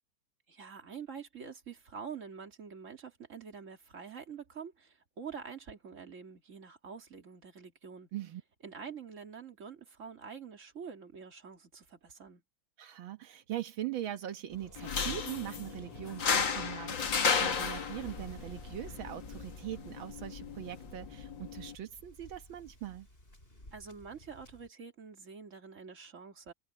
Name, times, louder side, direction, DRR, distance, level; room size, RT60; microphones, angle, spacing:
voice 1, 0.5-8.1 8.6-12.4 23.7-26.5, right 6 dB, 40° right, 2.8 m, -46 dB
voice 2, 12.8-23.1, right 12 dB, 85° right, 1.9 m, -41 dB
Waves surf, 14.5-24.7, left 1 dB, 25° left, 7.2 m, -53 dB
sound 1, 14.8-21.8, left 6 dB, 70° left, 2.7 m, -34 dB
omnidirectional pair, 2.1 m